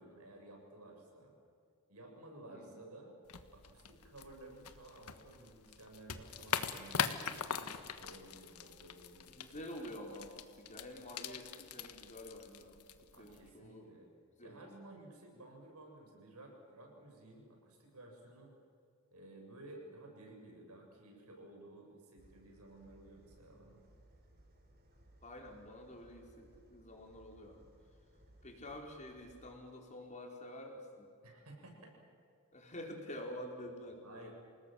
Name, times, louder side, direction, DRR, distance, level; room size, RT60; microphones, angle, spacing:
voice 1, 0.0-1.3 1.9-3.1 3.5-9.6 13.1-14.1 14.4-18.5 19.1-23.8 31.2-31.9 34.0-34.3, right 2 dB, 90° right, 1 dB, 7.4 m, -55 dB
voice 2, 2.5-2.8 9.2-14.0 14.4-14.8 25.2-27.7 28.4-31.1 32.5-34.3, left 1 dB, 35° left, 1 dB, 4.5 m, -49 dB
sound 1, 3.3-13.5, left 7 dB, 90° left, 1.5 m, -42 dB
sound 2, 22.2-29.5, right 1 dB, 45° right, 3.9 m, -64 dB
28.5 x 19.0 x 7.9 m, 2.4 s
head